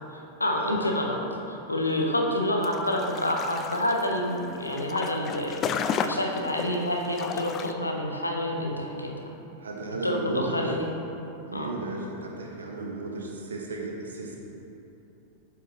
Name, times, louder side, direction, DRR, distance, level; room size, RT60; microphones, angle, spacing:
voice 1, 0.1-1.2 1.5-9.3 10.0-10.9 11.5-11.7, left 1 dB, 85° left, 1 dB, 0.7 m, -28 dB
sound 1, 2.6-7.7, left 6 dB, 30° left, 0.3 m, -34 dB
voice 2, 9.6-10.7 11.5-14.4, right 3 dB, 70° right, 0 dB, 1.0 m, -34 dB
7.4 x 7.2 x 3.0 m, 2.9 s
figure-of-eight pair, 90°, 0 cm